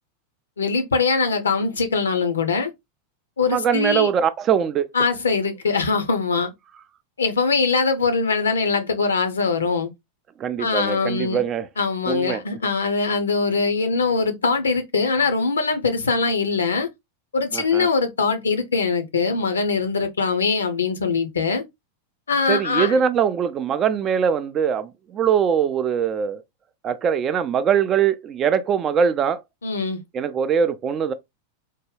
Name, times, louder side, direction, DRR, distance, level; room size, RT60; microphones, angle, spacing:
voice 1, 0.6-2.7 3.4-4.1 4.9-6.5 7.2-9.9 10.6-11.4 11.8-16.9 17.3-21.6 22.3-23.0 29.6-30.0, left 4 dB, 70° left, 0.7 m, -22 dB
voice 2, 3.5-4.9 10.4-11.7 12.1-12.4 17.5-17.9 22.5-26.4 26.8-29.4 30.1-31.1, right 7 dB, 30° right, 0.4 m, -22 dB
3.6 x 2.2 x 3.2 m
figure-of-eight pair, 90°, 0 cm